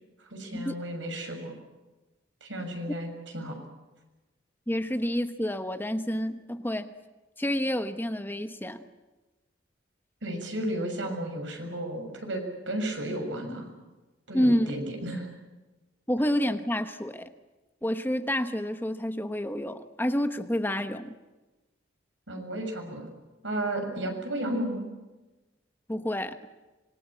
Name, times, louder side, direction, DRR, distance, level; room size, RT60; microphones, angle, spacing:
voice 1, 0.3-1.5 2.4-3.1 3.3-3.6 10.2-13.7 14.3-15.3 22.3-23.0 23.4-24.9, right 1 dB, 85° right, 4 dB, 6.8 m, -33 dB
voice 2, 4.7-6.9 7.4-8.8 14.3-14.7 16.1-17.3 17.8-21.1 25.9-26.3, equal, 10° left, 9 dB, 1.1 m, -28 dB
25.5 x 23.0 x 8.7 m, 1.1 s
head